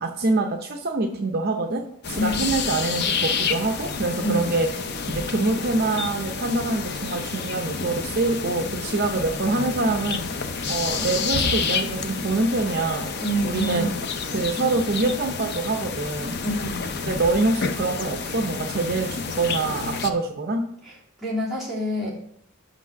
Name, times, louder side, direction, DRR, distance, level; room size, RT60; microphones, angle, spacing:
voice 1, 0.0-1.8 2.1-4.7 5.1-10.2 10.7-13.1 13.4-13.9 14.3-16.4 17.0-20.6, right 3 dB, 50° right, 3 dB, 0.7 m, -25 dB
sound 1, 2.0-20.1, left 5 dB, 50° left, 0.6 m, -29 dB
voice 2, 2.1-2.5 4.2-4.5 13.2-14.0 16.4-16.8 20.8-22.1, equal, ahead, -8 dB, 2.7 m, -27 dB
6.0 x 5.9 x 5.7 m, 0.67 s
head